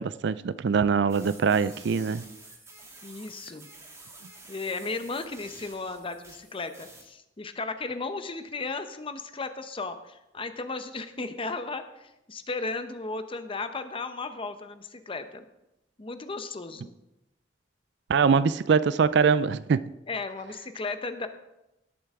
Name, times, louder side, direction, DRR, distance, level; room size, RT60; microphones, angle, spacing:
voice 1, 0.0-2.2 18.1-19.8, right 6 dB, 70° right, 0.4 m, -23 dB
sound 1, 1.1-7.0, right 2 dB, 15° right, 2.0 m, -49 dB
voice 2, 3.0-3.7 4.5-15.4 16.0-17.0 20.1-21.3, left 3 dB, 30° left, 0.8 m, -35 dB
18.0 x 7.8 x 3.7 m
head